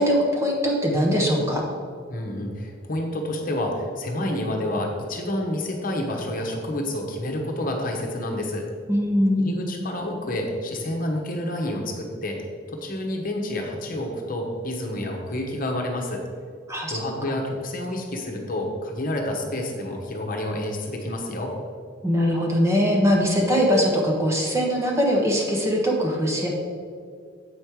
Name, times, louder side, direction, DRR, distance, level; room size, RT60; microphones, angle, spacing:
voice 1, 0.0-1.6 8.9-9.6 16.7-16.9 17.3-17.4 22.0-26.5, equal, 15° right, -1 dB, 1.2 m, -21 dB
voice 2, 2.1-8.7 9.4-12.4 12.7-16.2 16.9-21.5, left 1 dB, 45° left, 1 dB, 1.0 m, -29 dB
8.0 x 5.3 x 4.7 m, 2.2 s
head